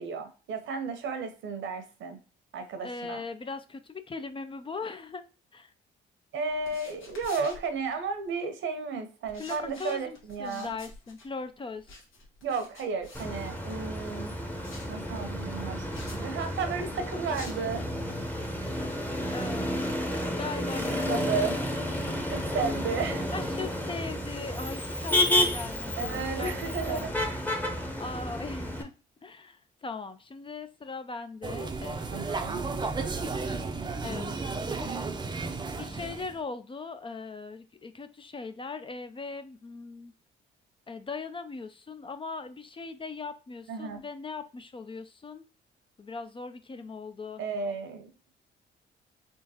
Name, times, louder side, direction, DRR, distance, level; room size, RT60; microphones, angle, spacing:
voice 1, 0.0-2.2 2.5-3.2 6.3-10.7 12.4-14.3 14.9-15.9 16.1-17.9 21.0-21.7 22.3-23.3 26.0-27.4 32.1-32.6 43.7-44.0 47.4-48.1, right 4 dB, 75° right, 7 dB, 0.9 m, -33 dB
voice 2, 2.8-5.2 5.5-5.7 9.4-12.0 19.3-19.8 20.2-21.5 22.1-22.6 23.3-27.1 28.0-28.9 29.2-32.3 34.0-34.5 35.8-40.1 40.9-45.4 46.0-47.4, left 4 dB, 25° left, 10 dB, 0.4 m, -39 dB
sound 1, 6.5-8.3 9.2-13.9 14.6-15.0 15.9-16.2 17.3-17.8, left 2 dB, 85° left, 1.6 m, -49 dB
Motor vehicle (road), 13.1-28.8, left 1 dB, 10° left, 0.9 m, -31 dB
sound 2, 31.4-36.4, right 3 dB, 20° right, 0.6 m, -33 dB
3.6 x 3.5 x 2.8 m, 0.34 s
cardioid pair, 90°, 20 cm